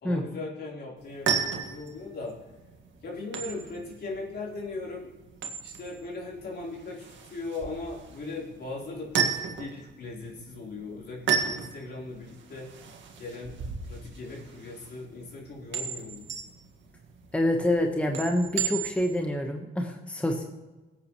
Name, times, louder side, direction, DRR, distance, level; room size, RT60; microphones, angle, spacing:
voice 1, 0.0-2.4 3.0-5.1 5.6-12.7 13.2-13.6 13.8-16.3, left 3 dB, 55° left, -3 dB, 3.9 m, -39 dB
sound 1, 1.0-19.2, right 7 dB, 70° right, 1.8 m, -34 dB
voice 2, 17.3-20.4, left 1 dB, 5° left, 3 dB, 1.2 m, -27 dB
17.5 x 8.7 x 3.1 m, 1.2 s
cardioid pair, 90°, 20 cm